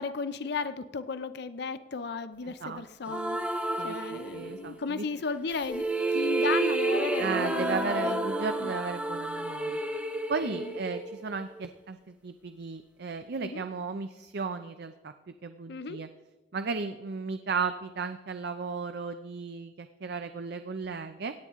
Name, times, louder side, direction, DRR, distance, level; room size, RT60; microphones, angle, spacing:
voice 1, 0.0-3.4 3.8-5.8 6.1-8.2 8.6-8.7 10.4-10.7 13.4-13.6 15.7-16.0, left 4 dB, 65° left, 12 dB, 0.6 m, -35 dB
voice 2, 2.4-3.2 3.8-5.1 7.2-9.8 10.3-15.1 15.4-16.1 16.5-21.3, right 4 dB, 65° right, 9 dB, 0.6 m, -35 dB
sound 1, 3.1-4.8 5.5-11.6, right 2 dB, 10° right, 0.9 m, -30 dB
17.0 x 9.4 x 3.7 m, 1.2 s
head